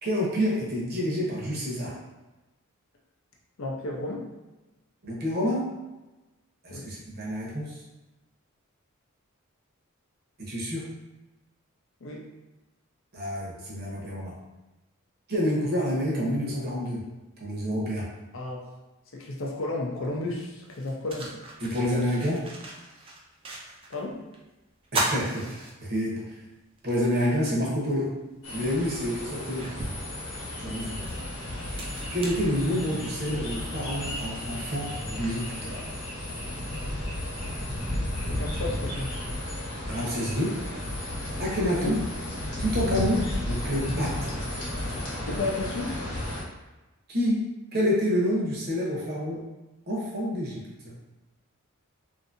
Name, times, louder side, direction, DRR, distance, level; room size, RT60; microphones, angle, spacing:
voice 1, 0.0-1.9 5.0-5.7 6.6-7.7 10.4-10.9 13.1-14.3 15.3-17.0 17.4-18.1 21.6-22.4 24.9-26.4 26.8-28.1 28.5-29.7 30.6-31.0 32.1-35.9 39.8-40.6 41.4-42.0 42.6-44.5 47.1-49.4 49.9-51.0, equal, 45° right, -5 dB, 0.8 m, -28 dB
voice 2, 3.6-4.3 6.7-6.9 12.0-12.3 18.3-18.7 19.1-21.3 23.9-24.2 38.3-39.2 41.8-42.0 45.2-45.9, left 2 dB, 65° left, -1 dB, 0.5 m, -33 dB
sound 1, 20.0-20.1 20.7-24.0 24.3-24.4 24.8-26.3 26.8-26.9 28.3-28.4 29.0-33.2, right 2 dB, 25° right, 0.3 m, -36 dB
sound 2, 28.4-46.4, left 1 dB, 85° left, 0.9 m, -33 dB
2.6 x 2.6 x 2.5 m, 1.1 s
head